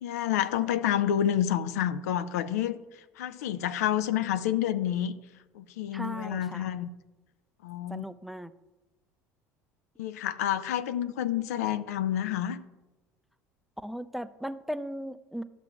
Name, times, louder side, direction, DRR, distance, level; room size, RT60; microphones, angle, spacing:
voice 1, 0.0-2.8 3.2-5.1 5.5-6.9 7.6-8.0 10.0-12.6, left 11 dB, 75° left, 13 dB, 0.4 m, -29 dB
voice 2, 5.9-6.7 7.9-8.5 13.8-15.4, equal, ahead, 12 dB, 0.4 m, -37 dB
12.0 x 6.6 x 2.4 m, 1.1 s
hypercardioid pair, 70°, 9 cm